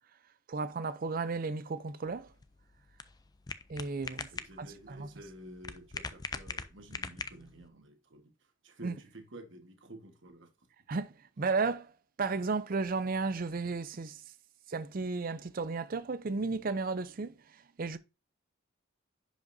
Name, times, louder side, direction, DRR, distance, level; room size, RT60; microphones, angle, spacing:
voice 1, 0.5-2.3 3.7-4.3 4.6-5.1 8.8-8.9 10.9-11.9 12.2-14.2 14.7-18.0, right 4 dB, 45° right, 0.4 m, -34 dB
sound 1, 2.1-7.7, left 4 dB, 20° left, 0.3 m, -43 dB
voice 2, 4.3-8.3 8.6-10.5, right 1 dB, 60° right, 1.3 m, -51 dB
10.5 x 5.1 x 2.6 m
head